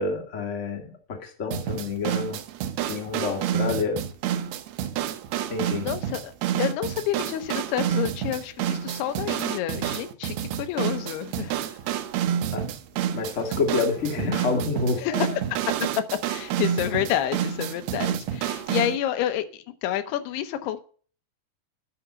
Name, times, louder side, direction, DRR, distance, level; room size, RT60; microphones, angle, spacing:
voice 1, 0.0-2.4 2.8-4.0 5.5-5.9 12.5-12.7 13.1-15.1, left 4 dB, 45° left, 2 dB, 0.9 m, -28 dB
sound 1, 1.5-19.0, right 10 dB, 75° right, 2.7 m, -29 dB
voice 2, 5.9-6.3 6.6-11.7 15.0-20.8, left 11 dB, 80° left, 10 dB, 2.8 m, -29 dB
9.8 x 5.8 x 7.9 m, 0.44 s
omnidirectional pair, 4.7 m